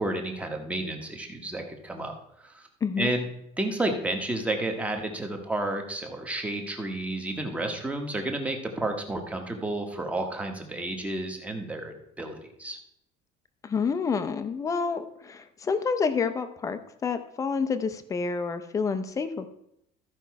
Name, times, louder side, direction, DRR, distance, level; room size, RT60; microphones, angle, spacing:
voice 1, 0.0-2.1 2.4-2.7 3.0-3.3 3.6-12.8, right 2 dB, 5° right, 3 dB, 1.0 m, -31 dB
voice 2, 13.6-19.5, left 5 dB, 20° left, 10 dB, 0.6 m, -28 dB
14.0 x 5.3 x 4.6 m, 0.77 s
cardioid pair, 175°, 18 cm